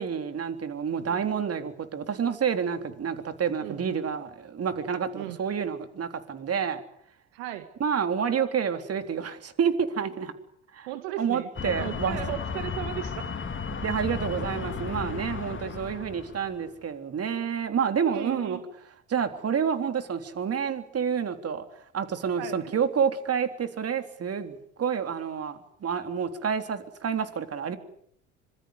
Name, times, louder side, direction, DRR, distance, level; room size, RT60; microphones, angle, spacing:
voice 1, 0.0-6.8 7.8-10.3 10.7-10.9 11.2-12.2 13.8-18.6 19.1-21.6 21.9-27.8, right 7 dB, 40° right, 8 dB, 3.6 m, -29 dB
voice 2, 3.6-4.0 5.1-5.4 7.3-7.7 10.8-13.3 18.1-18.6 22.4-22.7, right 13 dB, 75° right, 9 dB, 1.9 m, -36 dB
sound 1, 11.6-16.6, left 5 dB, 35° left, 3.4 m, -34 dB
26.0 x 23.0 x 8.2 m, 0.68 s
hypercardioid pair, 65°, 36 cm